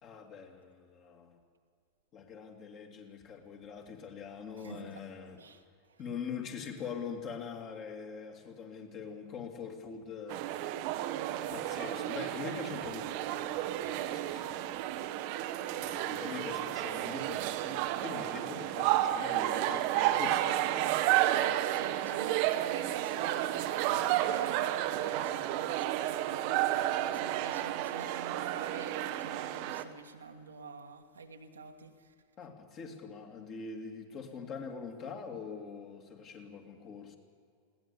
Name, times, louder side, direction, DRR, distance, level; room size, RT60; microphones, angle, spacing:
voice 1, 0.0-1.4 2.1-5.4 6.0-10.5 11.5-14.8 15.7-20.9 32.4-37.2, left 6 dB, 35° left, 2 dB, 2.8 m, -43 dB
voice 2, 4.6-5.0 5.4-6.0 21.3-32.1, right 4 dB, 70° right, 4 dB, 1.6 m, -48 dB
sound 1, 10.3-29.8, right 13 dB, 45° right, 1.0 m, -32 dB
21.0 x 17.5 x 7.1 m, 2.2 s
figure-of-eight pair, 90°, 0 cm